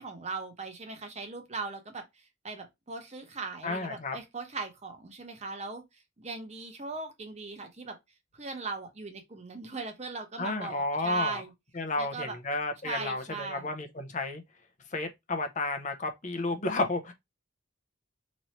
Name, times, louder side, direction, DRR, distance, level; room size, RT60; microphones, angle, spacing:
voice 1, 0.0-2.0 2.4-5.8 6.2-8.0 8.3-11.5 12.0-12.4 12.8-13.7, right 4 dB, 35° right, 0.9 m, -38 dB
voice 2, 3.6-4.2 10.4-11.4 11.7-14.4 14.9-17.1, left 2 dB, 45° left, 0.7 m, -32 dB
3.1 x 2.7 x 4.2 m
head